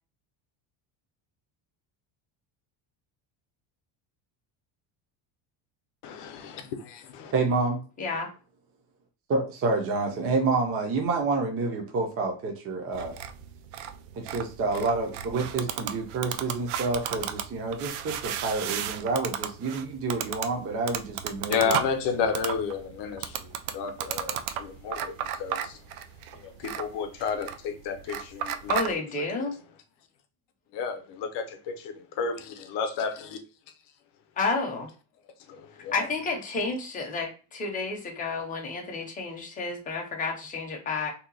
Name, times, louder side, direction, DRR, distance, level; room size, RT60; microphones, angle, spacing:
voice 1, 6.0-7.3 21.5-25.8 26.4-28.7 30.7-32.3 32.7-33.1 35.5-36.0, left 6 dB, 60° left, 0.7 m, -32 dB
voice 2, 7.3-7.8 9.3-13.1 14.2-21.8, right 3 dB, 30° right, 0.5 m, -28 dB
sound 1, 12.9-28.9, right 9 dB, 75° right, 0.5 m, -35 dB
voice 3, 28.7-29.6 34.4-34.9 35.9-41.1, left 3 dB, 15° left, 0.6 m, -30 dB
2.8 x 2.1 x 3.8 m
cardioid pair, 170°, 49 cm